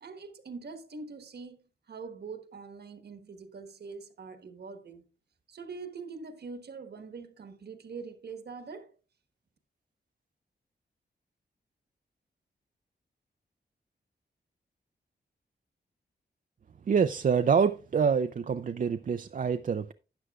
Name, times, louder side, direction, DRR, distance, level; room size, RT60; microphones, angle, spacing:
voice 1, 0.0-5.0 5.5-8.9, right 4 dB, 65° right, 1.3 m, -43 dB
voice 2, 16.9-19.9, right 6 dB, 50° right, 0.4 m, -26 dB
12.5 x 9.0 x 2.4 m
wide cardioid pair, 110°, 18 cm